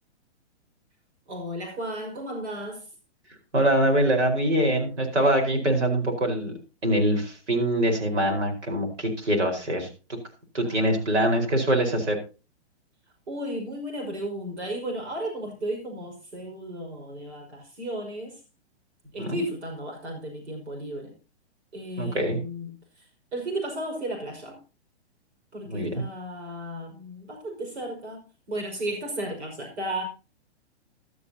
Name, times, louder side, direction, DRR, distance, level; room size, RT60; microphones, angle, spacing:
voice 1, 1.3-2.9 10.6-11.0 13.3-18.4 19.1-21.1 21.7-22.8 23.3-24.6 25.5-30.0, right 1 dB, 75° right, 5.4 m, -34 dB
voice 2, 3.5-6.5 6.8-9.9 10.5-12.2 19.2-19.4 22.0-22.4 25.7-26.0, right 1 dB, 90° right, 4.8 m, -24 dB
15.5 x 12.0 x 2.9 m
hypercardioid pair, 145°, 34 cm